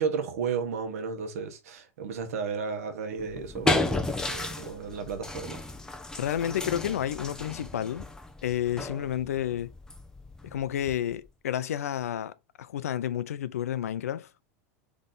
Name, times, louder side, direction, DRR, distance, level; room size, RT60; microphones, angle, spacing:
voice 1, 0.0-5.6, right 6 dB, 75° right, 1.2 m, -33 dB
sound 1, 3.2-11.3, left 2 dB, 10° left, 0.9 m, -33 dB
voice 2, 6.2-8.1 8.4-9.7 10.4-14.3, left 10 dB, 85° left, 0.4 m, -30 dB
3.7 x 3.6 x 3.9 m
hypercardioid pair, 95°, 8 cm